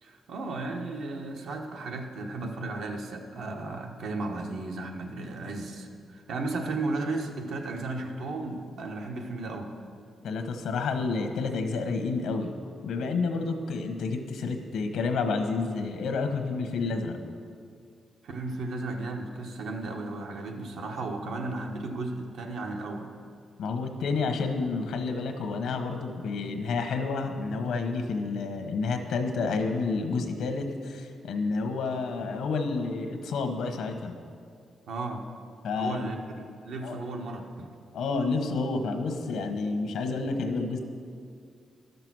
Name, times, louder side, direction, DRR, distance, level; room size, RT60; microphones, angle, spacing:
voice 1, 0.0-9.7 18.2-23.1 34.9-35.2 35.7-37.7, right 2 dB, 75° right, 3 dB, 1.1 m, -35 dB
voice 2, 10.2-12.5 12.8-17.2 23.6-34.1 35.6-36.1 36.8-37.0 37.9-40.8, left 4 dB, 90° left, 6 dB, 1.1 m, -30 dB
12.0 x 6.8 x 6.2 m, 2.3 s
wide cardioid pair, 150°, 0 cm